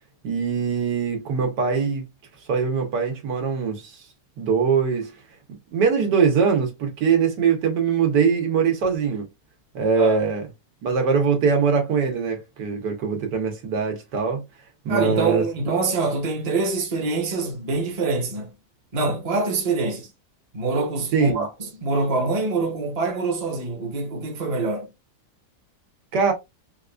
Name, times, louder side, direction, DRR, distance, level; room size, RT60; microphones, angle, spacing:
voice 1, 0.2-2.1 2.5-4.1 4.4-5.1 5.7-9.3 9.7-10.4 10.8-14.4 14.9-15.4 21.1-21.5 26.1-26.3, right 5 dB, 85° right, 1.6 m, -22 dB
voice 2, 14.9-18.5 18.9-20.1 20.5-24.9, right 3 dB, 30° right, 0.8 m, -25 dB
4.0 x 2.5 x 2.3 m
omnidirectional pair, 1.8 m